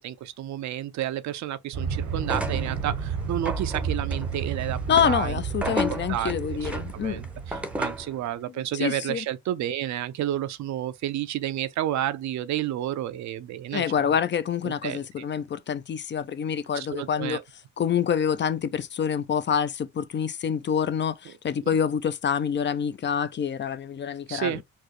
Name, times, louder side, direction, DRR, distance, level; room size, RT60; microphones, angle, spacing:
voice 1, 0.0-5.4 5.6-5.8 6.1-6.3 6.6-13.8 14.6-15.3 16.7-17.4 24.3-24.6, right 12 dB, 70° right, 0.5 m, -31 dB
Aircraft, 1.7-8.1, right 6 dB, 90° right, 1.2 m, -31 dB
sound 1, 2.2-8.2, equal, 5° right, 0.7 m, -34 dB
voice 2, 4.9-7.2 8.7-9.2 13.7-17.4 17.8-24.6, left 8 dB, 40° left, 0.4 m, -26 dB
4.6 x 2.0 x 3.0 m
cardioid pair, 90°, 30 cm